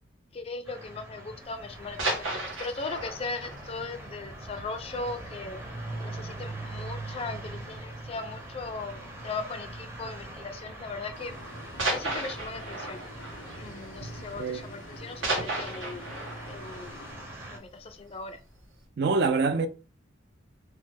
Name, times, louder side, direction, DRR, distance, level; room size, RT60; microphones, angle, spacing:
voice 1, 0.3-2.3 2.6-5.6 6.0-11.3 11.8-13.0 13.6-16.1 16.5-17.0 17.5-18.4, left 3 dB, 30° left, 0.4 m, -38 dB
sound 1, 0.6-17.6, right 2 dB, 15° right, 0.6 m, -42 dB
sound 2, 1.7-5.3 5.6-5.7 6.1-6.3 6.6-6.7 7.6-8.0 9.2-9.4 10.3-10.4 11.8-14.6 14.8-18.0 18.4-18.5, right 2 dB, 85° right, 1.1 m, -35 dB
sound 3, 11.1-17.8, left 2 dB, 75° left, 0.6 m, -49 dB
voice 2, 19.0-19.7, right 4 dB, 55° right, 0.4 m, -25 dB
3.1 x 2.1 x 3.2 m
head